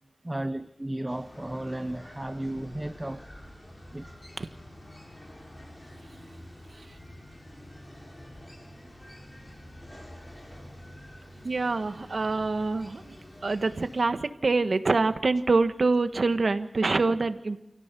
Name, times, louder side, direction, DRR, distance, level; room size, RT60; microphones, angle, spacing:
voice 1, 0.2-3.3 3.9-4.1, right 1 dB, 25° right, 0.9 m, -34 dB
sound 1, 1.1-14.0, left 1 dB, 30° left, 7.3 m, -47 dB
voice 2, 11.4-13.2 13.4-17.6, right 3 dB, 75° right, 1.4 m, -25 dB
28.0 x 17.0 x 6.9 m
wide cardioid pair, 65°, 0 cm